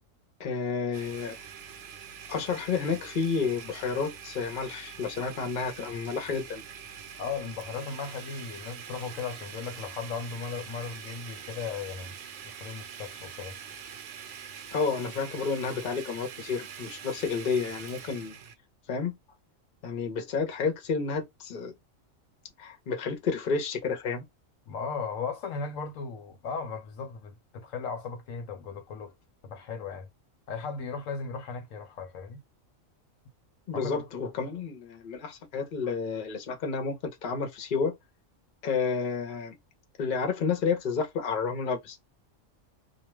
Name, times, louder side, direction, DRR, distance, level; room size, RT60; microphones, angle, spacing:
voice 1, 0.4-1.4 2.3-6.6 14.7-18.3 18.9-19.1 19.8-21.7 22.6-24.2 33.7-37.9 38.6-39.5 40.0-42.0, left 5 dB, 45° left, 0.8 m, -30 dB
Domestic sounds home sounds, 0.9-18.6, right 7 dB, 65° right, 0.9 m, -44 dB
voice 2, 7.2-12.1 12.4-13.6 24.7-29.1 29.4-30.1 30.5-32.4 33.7-34.0, left 5 dB, 75° left, 1.0 m, -36 dB
2.4 x 2.3 x 3.0 m
omnidirectional pair, 1.4 m